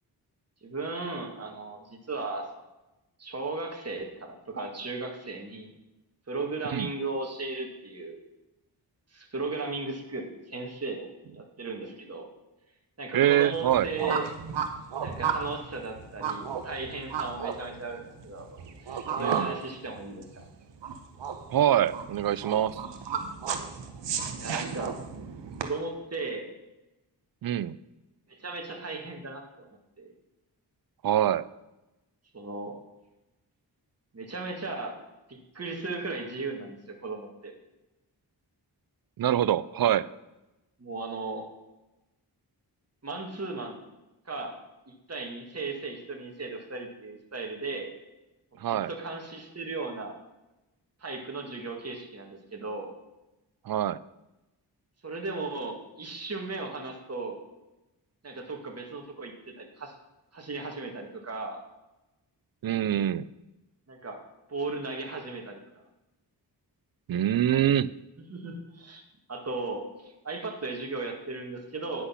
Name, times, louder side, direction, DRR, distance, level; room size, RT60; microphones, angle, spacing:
voice 1, 0.6-2.6 3.2-5.7 6.3-8.2 9.1-12.3 13.0-14.3 15.0-20.4 24.4-25.0 25.6-26.5 28.3-29.7 30.0-30.1 32.3-32.8 34.1-35.0 35.3-37.5 40.8-41.4 43.0-43.8 44.3-44.6 44.9-47.9 48.7-50.2 51.0-52.9 55.0-57.4 58.2-59.9 60.3-61.6 63.9-64.2 64.5-65.6 68.3-69.0 69.3-72.1, right 3 dB, 35° right, 2 dB, 1.8 m, -36 dB
voice 2, 13.1-13.9 19.2-19.5 21.5-22.8 27.4-27.8 31.0-31.4 39.2-40.1 48.6-48.9 53.7-54.0 62.6-63.3 67.1-67.9, right 11 dB, 60° right, 19 dB, 0.5 m, -25 dB
sound 1, 13.5-25.6, right 7 dB, 85° right, 0.9 m, -34 dB
9.7 x 6.2 x 5.7 m, 0.99 s
cardioid pair, 50°, 41 cm